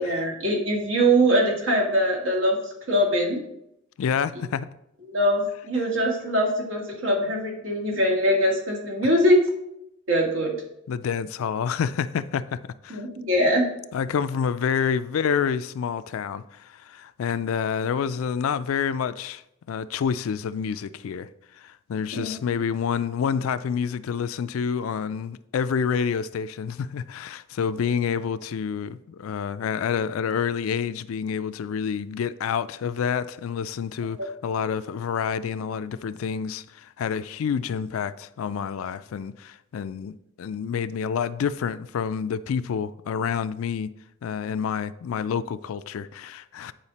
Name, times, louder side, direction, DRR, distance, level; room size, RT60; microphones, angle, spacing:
voice 1, 0.0-2.6 2.9-3.4 5.1-9.4 10.1-10.5 12.9-13.7 22.1-22.4, equal, 80° right, 2.0 m, -22 dB
voice 2, 4.0-4.7 10.9-13.0 13.9-19.4 19.7-21.3 21.5-43.9 44.2-46.7, left 7 dB, 80° left, 0.4 m, -28 dB
8.9 x 4.8 x 4.1 m
head